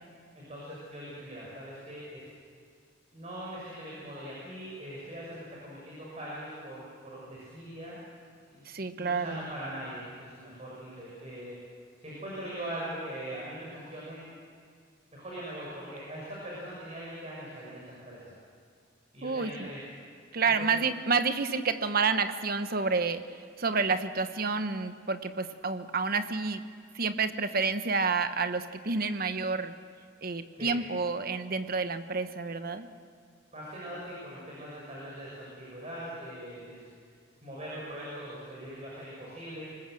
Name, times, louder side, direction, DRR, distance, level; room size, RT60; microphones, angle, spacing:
voice 1, 0.3-2.2 3.1-8.0 8.5-11.6 12.0-14.3 15.1-18.2 19.1-19.8 20.4-20.8 30.5-30.8 33.5-36.8 37.4-39.7, right 1 dB, 35° right, -5 dB, 6.5 m, -41 dB
voice 2, 8.6-9.5 19.2-19.7 20.3-26.6 26.9-29.7 30.2-32.9, right 4 dB, 50° right, 10 dB, 1.1 m, -29 dB
25.0 x 20.5 x 7.8 m, 2.3 s
head